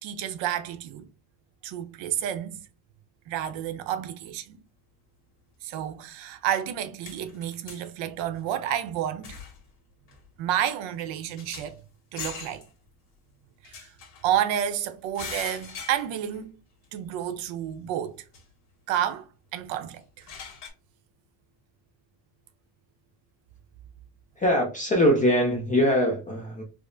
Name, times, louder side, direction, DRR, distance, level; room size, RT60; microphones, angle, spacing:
voice 1, 0.0-1.1 1.6-2.6 3.3-4.6 5.6-9.4 10.4-11.8 12.1-12.6 13.7-13.9 14.2-16.5 16.9-18.2 18.9-19.3 19.5-20.0, right 10 dB, 65° right, 0.7 m, -30 dB
sound 1, 6.5-6.6 7.0-7.9 8.4-8.5 9.2-9.7 10.1-10.3 10.7-10.8 11.0-11.8 12.2-12.7 13.6-14.5 15.1-16.4 16.8-16.9 18.3-18.4 20.0-20.7, left 5 dB, 55° left, 1.5 m, -41 dB
voice 2, 24.4-26.6, equal, 20° left, 0.3 m, -22 dB
4.8 x 2.0 x 2.5 m
cardioid pair, 160°, 49 cm